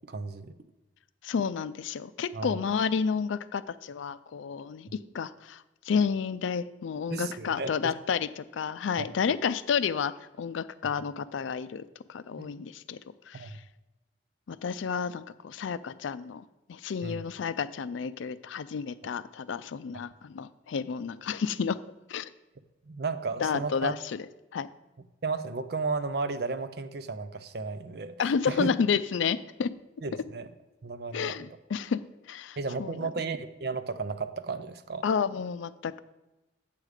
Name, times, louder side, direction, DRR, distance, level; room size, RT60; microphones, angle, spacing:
voice 1, 0.1-0.5 2.3-2.6 7.1-7.9 9.0-9.1 12.4-12.5 13.3-13.5 17.0-17.2 22.9-23.9 25.2-28.2 28.5-28.7 30.0-30.5 30.8-31.4 32.6-35.0, right 4 dB, 55° right, 11 dB, 0.5 m, -33 dB
voice 2, 1.2-11.8 12.1-13.0 13.3-13.6 14.5-21.8 22.1-22.3 23.4-24.2 24.5-24.7 28.2-29.7 31.1-32.0 32.3-32.9 35.0-36.0, left 6 dB, 85° left, 15 dB, 0.4 m, -31 dB
8.4 x 6.4 x 4.9 m, 1.0 s
head